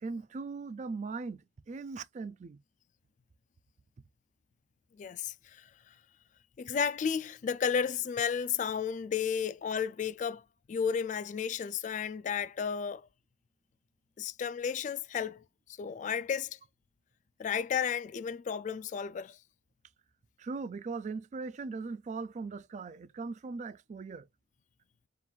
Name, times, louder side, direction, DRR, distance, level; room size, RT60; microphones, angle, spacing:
voice 1, 0.0-1.4 1.7-2.6 20.4-24.3, right 4 dB, 40° right, 0.3 m, -39 dB
voice 2, 5.0-5.9 6.6-13.1 14.2-15.4 15.8-16.6 17.4-19.4, left 7 dB, 40° left, 0.3 m, -33 dB
3.7 x 2.4 x 4.4 m
head